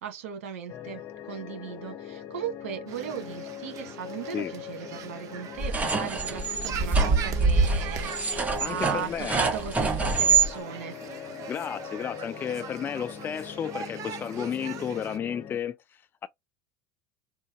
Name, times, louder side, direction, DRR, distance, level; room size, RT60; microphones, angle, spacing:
voice 1, 0.0-11.0, right 9 dB, 80° right, 1.4 m, -37 dB
sound 1, 0.7-15.6, left 9 dB, 50° left, 0.8 m, -42 dB
sound 2, 2.9-15.2, right 7 dB, 50° right, 0.8 m, -42 dB
sound 3, 5.6-10.5, right 4 dB, 20° right, 0.9 m, -25 dB
voice 2, 8.6-9.5 11.5-16.3, left 8 dB, 30° left, 0.3 m, -33 dB
3.8 x 2.0 x 2.9 m
hypercardioid pair, 90°, 7 cm